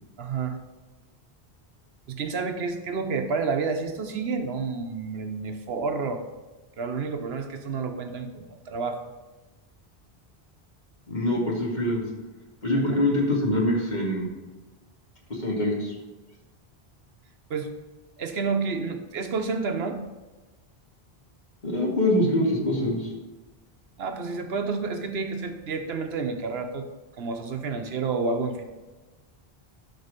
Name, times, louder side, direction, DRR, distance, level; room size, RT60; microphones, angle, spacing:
voice 1, 0.2-0.6 2.1-6.2 6.8-9.0 12.7-13.1 17.5-17.7 18.2-20.0 24.0-26.9 27.2-28.7, right 4 dB, 75° right, 6 dB, 1.1 m, -30 dB
voice 2, 11.1-12.0 12.6-14.3 15.3-15.9 21.6-23.1, left 1 dB, 45° left, -2 dB, 2.1 m, -24 dB
12.5 x 4.4 x 5.1 m, 1.2 s
omnidirectional pair, 1.1 m